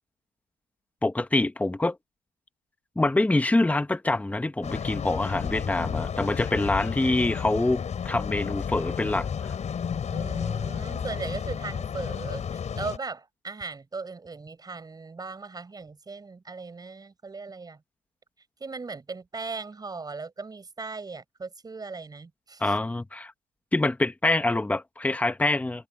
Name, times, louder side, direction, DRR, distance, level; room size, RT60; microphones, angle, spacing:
voice 1, 1.0-2.0 3.0-9.5 22.6-23.3 23.7-25.9, left 2 dB, 10° left, 1.2 m, -25 dB
sound 1, 4.6-13.0, left 7 dB, 45° left, 6.6 m, -32 dB
voice 2, 10.1-17.8 18.6-22.7, right 4 dB, 25° right, 6.8 m, -38 dB
cardioid pair, 110°, 17 cm